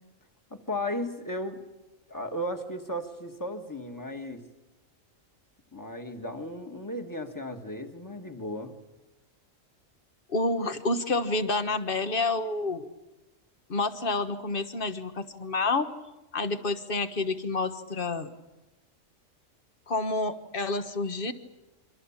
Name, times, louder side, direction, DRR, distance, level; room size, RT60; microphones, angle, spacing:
voice 1, 0.5-1.6 2.1-4.4 5.7-8.7, left 1 dB, 15° left, 5 dB, 1.7 m, -35 dB
voice 2, 10.3-12.9 13.7-15.9 16.3-18.3 19.9-21.3, left 3 dB, 45° left, 9 dB, 1.4 m, -29 dB
29.0 x 24.5 x 7.3 m, 1.1 s
omnidirectional pair, 1.4 m